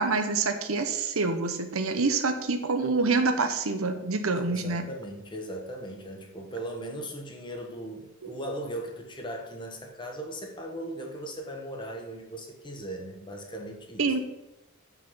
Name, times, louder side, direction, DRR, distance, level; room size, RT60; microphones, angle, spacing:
voice 1, 0.0-4.9 8.2-8.3 14.0-14.2, right 3 dB, 85° right, 7 dB, 1.0 m, -26 dB
voice 2, 4.4-14.0, right 1 dB, 25° left, 2 dB, 1.3 m, -38 dB
6.9 x 6.1 x 5.5 m, 0.98 s
head